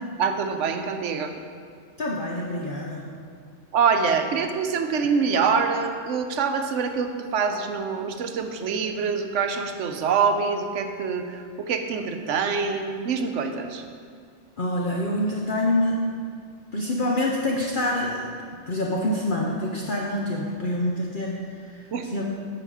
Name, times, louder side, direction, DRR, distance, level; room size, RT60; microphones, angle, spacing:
voice 1, 0.2-1.3 3.7-13.8 21.9-22.1, right 5 dB, 75° right, 6 dB, 1.0 m, -25 dB
voice 2, 2.0-3.1 14.6-16.0 16.7-18.3 18.7-22.2, left 1 dB, 50° left, -2 dB, 0.9 m, -26 dB
9.1 x 6.9 x 4.8 m, 2.1 s
omnidirectional pair, 1.3 m